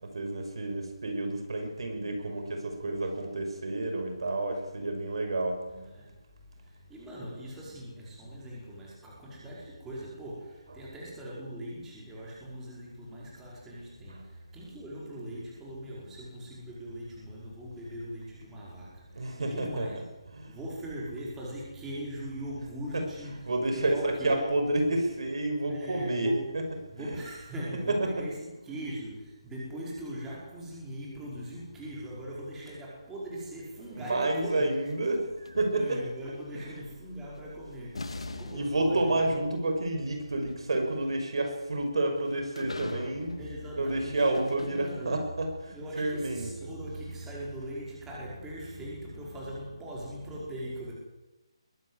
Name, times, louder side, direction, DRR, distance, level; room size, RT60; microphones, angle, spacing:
voice 1, 0.0-5.6 10.7-10.9 14.1-14.2 19.2-20.5 22.9-27.3 27.6-28.3 33.9-36.0 36.5-36.8 38.3-43.4 43.8-46.7, right 2 dB, 65° right, 5 dB, 5.8 m, -30 dB
voice 2, 5.7-6.2 6.5-19.9 20.3-24.5 25.6-26.5 26.9-34.7 35.7-39.3 43.4-44.3 44.6-45.2 45.7-50.9, equal, 10° right, -5 dB, 5.2 m, -40 dB
sound 1, 33.8-36.2 37.4-37.5 37.9-45.4, left 2 dB, 85° left, 2.7 m, -44 dB
22.0 x 12.5 x 9.9 m, 1.0 s
hypercardioid pair, 165°, 3 cm